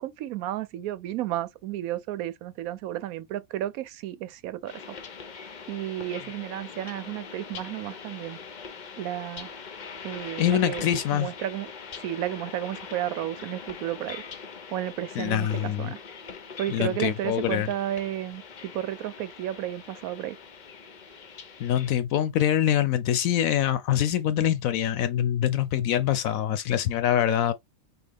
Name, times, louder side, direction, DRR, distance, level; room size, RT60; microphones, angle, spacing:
voice 1, 0.0-5.0 5.7-8.4 9.0-9.5 10.0-10.9 11.1-11.7 12.0-14.2 14.7-16.0 16.6-20.4, right 12 dB, 85° right, 1.0 m, -32 dB
sound 1, 4.7-21.9, left 5 dB, 45° left, 0.6 m, -42 dB
voice 2, 10.4-11.3 15.2-15.9 16.7-17.7 21.6-27.5, left 10 dB, 75° left, 1.0 m, -24 dB
5.8 x 2.3 x 3.4 m
omnidirectional pair, 1.5 m